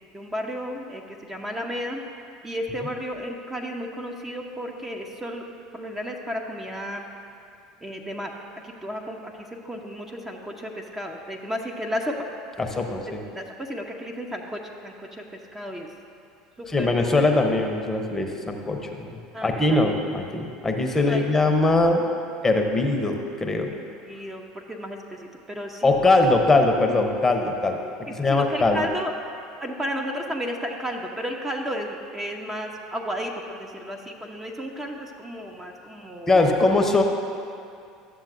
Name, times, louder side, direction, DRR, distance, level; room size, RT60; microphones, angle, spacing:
voice 1, 0.1-2.0 2.4-5.5 5.7-7.1 7.8-8.3 8.6-12.3 13.1-15.9 16.6-17.1 19.3-19.8 21.0-21.4 23.7-25.9 28.1-29.2 29.6-36.4, equal, 15° right, 2 dB, 0.8 m, -33 dB
voice 2, 12.6-13.2 16.7-22.1 22.4-23.7 25.8-27.8 28.1-28.8 36.3-37.0, left 2 dB, 20° left, 4 dB, 0.8 m, -21 dB
13.0 x 7.3 x 2.6 m, 2.4 s
hypercardioid pair, 75°, 2 cm